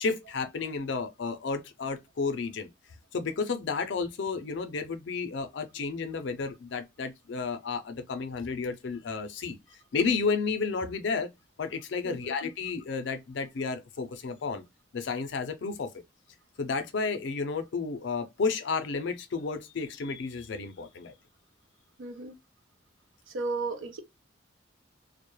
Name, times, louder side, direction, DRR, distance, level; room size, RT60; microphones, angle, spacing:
voice 1, 0.0-2.7 3.1-9.6 9.9-11.3 11.6-14.6 14.9-15.9 16.6-21.1, left 4 dB, 65° left, 0.4 m, -32 dB
voice 2, 12.0-12.3 22.0-22.4 23.3-24.0, right 3 dB, 75° right, 0.5 m, -34 dB
2.2 x 2.0 x 2.9 m
head